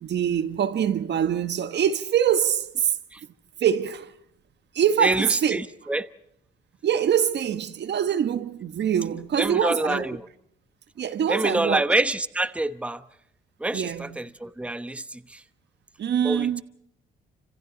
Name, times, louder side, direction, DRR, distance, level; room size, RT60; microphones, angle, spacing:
voice 1, 0.0-2.9 3.6-4.1 4.7-5.6 6.8-10.1 11.0-11.8 13.7-14.1 16.0-16.6, right 9 dB, 60° right, 1.5 m, -24 dB
voice 2, 5.0-6.1 9.4-10.3 11.3-13.0 13.6-15.4 16.2-16.6, right 2 dB, 5° right, 1.0 m, -26 dB
29.5 x 26.5 x 4.2 m
cardioid pair, 90°, 20 cm